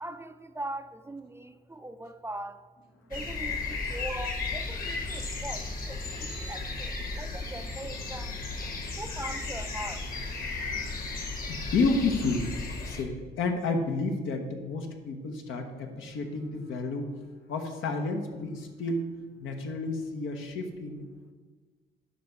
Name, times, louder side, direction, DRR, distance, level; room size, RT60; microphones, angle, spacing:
voice 1, 0.0-2.6 3.1-8.4 9.0-10.1, right 1 dB, 15° right, 10 dB, 0.4 m, -41 dB
sound 1, 3.1-13.0, left 3 dB, 45° left, 1.4 m, -35 dB
voice 2, 11.4-12.6 12.8-17.1 17.5-19.1 19.4-21.0, left 3 dB, 85° left, 4 dB, 1.1 m, -31 dB
11.0 x 4.0 x 4.7 m, 1.4 s
cardioid pair, 90°, 20 cm